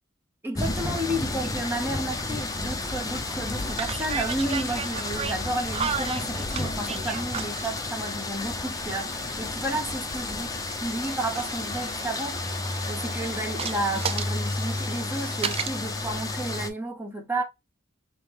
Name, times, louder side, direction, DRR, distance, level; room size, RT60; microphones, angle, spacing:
voice 1, 0.4-10.5 10.8-17.4, right 1 dB, 10° right, 1.0 m, -32 dB
sound 1, 0.5-16.7, left 2 dB, 20° left, 0.6 m, -31 dB
sound 2, 2.2-2.3 2.7-2.9 3.7-7.7 8.8-10.5 10.9-15.7, right 6 dB, 30° right, 0.4 m, -35 dB
5.2 x 2.1 x 3.0 m
head